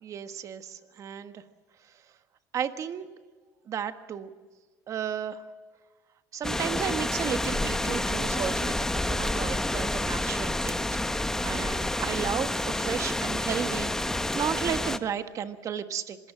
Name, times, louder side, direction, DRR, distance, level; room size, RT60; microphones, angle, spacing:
voice 1, 0.0-1.4 2.5-3.1 3.7-4.3 4.9-5.4 6.3-8.8 9.1-10.8 11.4-16.2, right 8 dB, 45° right, 9 dB, 1.5 m, -33 dB
sound 1, 6.4-15.0, left 1 dB, 5° left, 1.0 m, -29 dB
26.0 x 17.5 x 7.5 m, 1.4 s
supercardioid pair, 105°, 7 cm